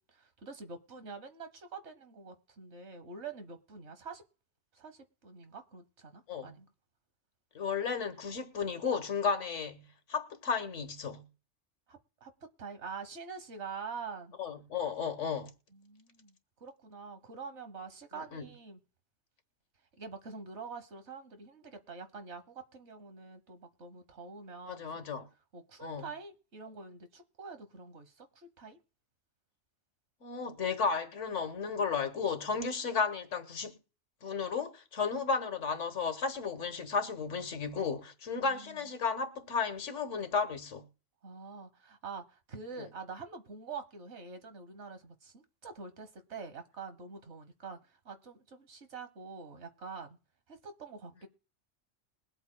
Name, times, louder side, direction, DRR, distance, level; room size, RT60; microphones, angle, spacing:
voice 1, 0.0-4.2 4.7-6.7 11.9-12.3 12.6-14.4 15.7-18.8 20.0-25.0 25.5-28.8 38.3-38.9 41.2-50.2 50.5-51.3, right 5 dB, 70° right, 1.5 m, -46 dB
voice 2, 7.5-11.2 14.4-15.5 18.3-18.5 24.7-25.3 25.8-26.0 30.2-33.7 34.2-40.8, left 5 dB, 90° left, 1.6 m, -33 dB
21.5 x 8.1 x 2.2 m
omnidirectional pair, 1.2 m